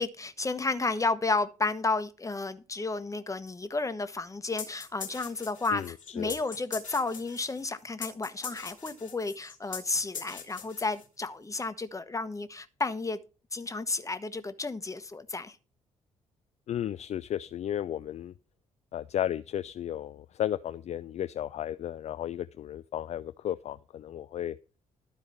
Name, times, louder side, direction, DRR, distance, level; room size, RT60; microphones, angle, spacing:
voice 1, 0.0-13.2 13.5-15.6, left 3 dB, 20° left, 1.2 m, -32 dB
sound 1, 4.6-11.3, left 6 dB, 85° left, 1.7 m, -42 dB
voice 2, 5.7-6.4 16.7-18.3 18.9-24.6, left 11 dB, 45° left, 0.4 m, -34 dB
12.5 x 4.8 x 7.1 m
figure-of-eight pair, 40°, 16 cm